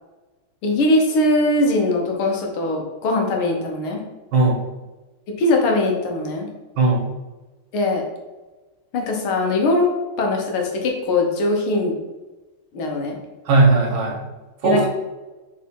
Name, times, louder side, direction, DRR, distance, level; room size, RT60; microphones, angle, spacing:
voice 1, 0.6-4.0 5.4-6.5 7.7-8.0 8.9-9.9 10.2-12.0 12.7-13.2 14.6-14.9, left 2 dB, 80° left, 1 dB, 2.0 m, -21 dB
voice 2, 4.3-4.6 6.8-7.1 13.5-14.2 14.6-14.9, right 3 dB, 70° right, -1 dB, 2.2 m, -17 dB
4.8 x 4.7 x 4.6 m, 1.2 s
omnidirectional pair, 2.3 m